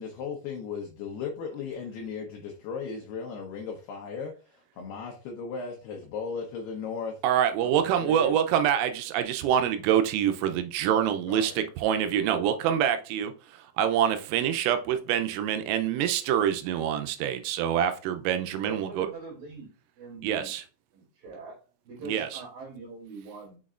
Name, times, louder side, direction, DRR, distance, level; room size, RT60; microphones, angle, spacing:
voice 1, 0.0-7.2 7.6-8.4 11.0-11.6, left 5 dB, 80° left, 2.3 m, -37 dB
voice 2, 7.2-19.1 20.2-20.6 22.1-22.4, right 9 dB, 85° right, 3.2 m, -26 dB
voice 3, 18.6-19.7 20.0-20.5 20.9-23.6, right 3 dB, 55° right, 3.6 m, -42 dB
6.5 x 6.1 x 2.4 m
omnidirectional pair, 5.9 m